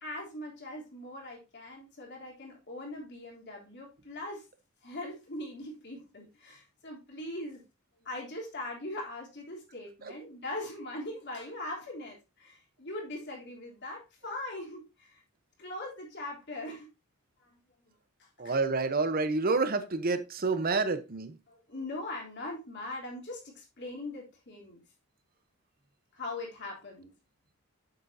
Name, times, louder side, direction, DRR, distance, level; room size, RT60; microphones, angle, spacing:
voice 1, 0.0-4.4 4.8-7.6 8.0-15.2 15.6-16.9 17.4-17.5 18.2-18.6 21.5-24.8 26.1-27.1, left 1 dB, 55° left, 3.3 m, -41 dB
voice 2, 18.4-21.4, right 3 dB, 45° right, 0.9 m, -28 dB
7.9 x 7.5 x 2.8 m
head